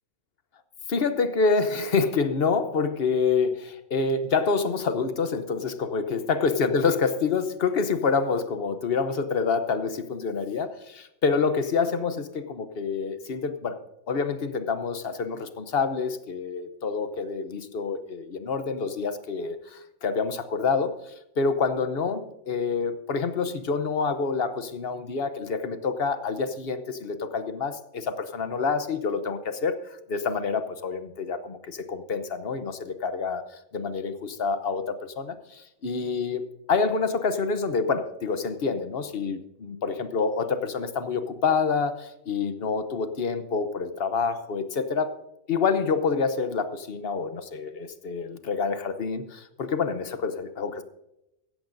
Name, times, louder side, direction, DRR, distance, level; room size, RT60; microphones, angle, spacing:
voice 1, 0.9-13.8 14.1-45.2 45.5-50.8, left 5 dB, 50° left, 10 dB, 1.0 m, -27 dB
16.5 x 13.5 x 2.6 m, 0.88 s
omnidirectional pair, 1.5 m